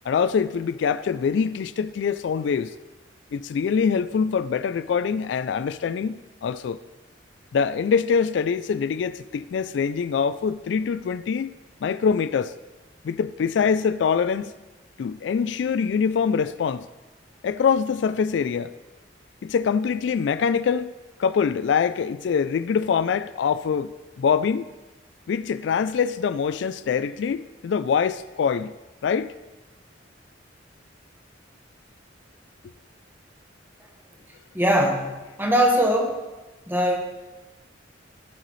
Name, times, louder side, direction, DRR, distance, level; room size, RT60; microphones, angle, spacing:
voice 1, 0.1-2.7 3.3-6.8 7.5-11.5 11.8-12.5 13.0-14.5 15.0-16.9 17.4-18.7 19.4-20.9 21.2-23.9 24.2-24.7 25.3-28.7 29.0-29.3, left 6 dB, 75° left, 0.3 m, -24 dB
voice 2, 34.5-35.1 35.4-36.2 36.7-37.0, equal, 10° right, 1.4 m, -20 dB
16.0 x 6.6 x 3.2 m
head